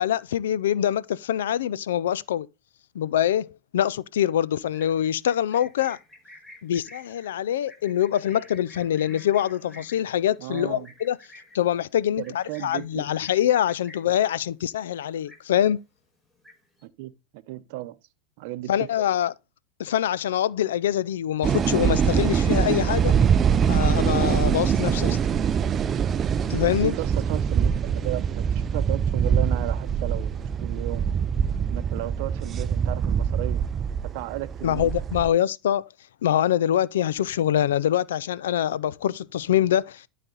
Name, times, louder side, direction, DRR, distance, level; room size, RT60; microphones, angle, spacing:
voice 1, 0.0-2.5 2.9-6.0 6.6-11.2 11.5-15.8 18.7-19.3 19.8-23.1 23.7-25.2 26.5-26.9 34.6-35.9 36.2-40.0, left 10 dB, 85° left, 0.4 m, -24 dB
Livestock farm animals working animals, 4.6-14.2 14.6-14.9 15.1-15.8 16.1-16.8, left 1 dB, 5° left, 5.9 m, -50 dB
voice 2, 10.4-10.9 12.2-13.1 16.8-18.0 18.4-18.9 24.9-25.2 26.6-31.1 31.7-33.6 34.0-34.9, right 16 dB, 60° right, 0.7 m, -35 dB
sound 1, 21.4-35.3, right 7 dB, 25° right, 0.4 m, -24 dB
12.0 x 4.2 x 3.9 m
supercardioid pair, 125°, 0 cm